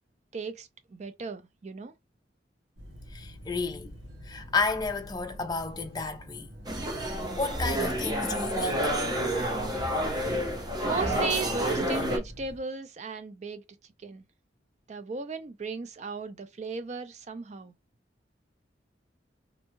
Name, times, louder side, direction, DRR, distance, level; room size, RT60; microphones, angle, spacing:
voice 1, 0.3-1.9 10.8-13.6 14.0-14.2 14.9-17.7, right 4 dB, 40° right, 0.4 m, -36 dB
sound 1, 2.8-12.6, equal, 70° right, 0.9 m, -46 dB
voice 2, 3.1-3.9 4.3-6.5 7.3-8.9, left 4 dB, 20° left, 0.4 m, -31 dB
sound 2, 6.7-12.2, right 1 dB, 25° right, 0.8 m, -29 dB
2.6 x 2.2 x 3.0 m
head